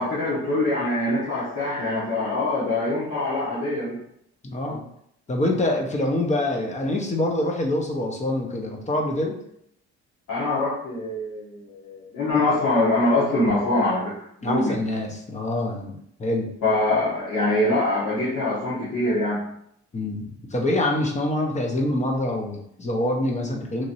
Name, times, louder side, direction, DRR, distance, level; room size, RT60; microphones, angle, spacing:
voice 1, 0.0-4.0 10.3-14.1 14.4-14.8 16.6-19.4, left 2 dB, 70° left, -10 dB, 1.2 m, -24 dB
voice 2, 4.4-4.8 5.3-9.4 14.4-16.5 19.9-23.8, left 1 dB, 25° left, 1 dB, 0.6 m, -25 dB
3.0 x 2.6 x 2.6 m, 0.73 s
cardioid pair, 90°, 30 cm